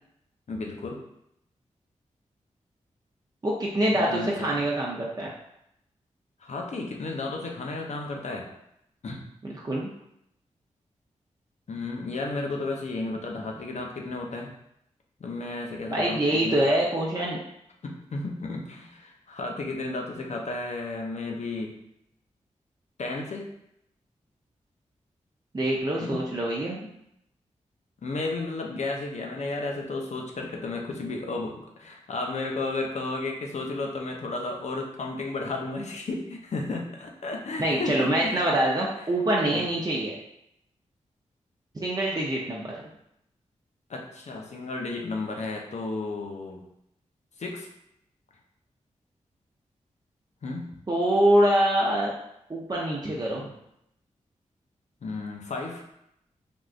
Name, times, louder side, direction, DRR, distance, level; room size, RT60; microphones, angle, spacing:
voice 1, 0.5-1.0 3.9-4.6 6.4-8.5 9.0-9.2 11.7-14.5 15.2-16.6 17.8-21.8 23.0-23.5 26.0-26.3 28.0-38.4 39.5-39.7 43.9-46.6 47.4-47.7 50.4-50.8 55.0-55.8, left 3 dB, 60° left, 1 dB, 0.6 m, -33 dB
voice 2, 3.4-5.3 9.4-9.9 15.9-17.4 25.5-26.8 37.6-40.2 41.8-42.7 50.9-52.1 52.5-53.5, right 1 dB, 30° right, -4 dB, 0.6 m, -25 dB
3.5 x 2.5 x 2.4 m, 0.78 s
cardioid pair, 50°, 13 cm